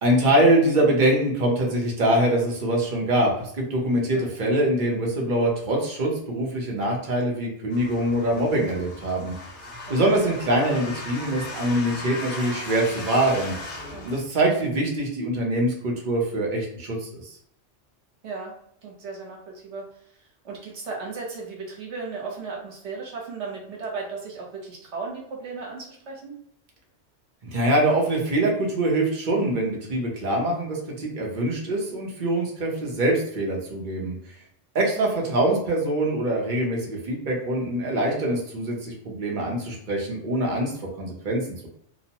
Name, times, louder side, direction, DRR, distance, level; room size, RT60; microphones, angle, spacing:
voice 1, 0.0-9.3 9.9-13.5 14.0-17.4 27.4-34.2 34.7-41.7, right 1 dB, 50° right, -1 dB, 0.8 m, -24 dB
sound 1, 7.7-14.2, left 2 dB, 75° left, 1.1 m, -37 dB
voice 2, 18.2-18.5 18.8-19.9 20.4-26.3 34.9-35.2, right 4 dB, 75° right, -2 dB, 1.1 m, -36 dB
2.9 x 2.1 x 2.8 m, 0.70 s
omnidirectional pair, 1.2 m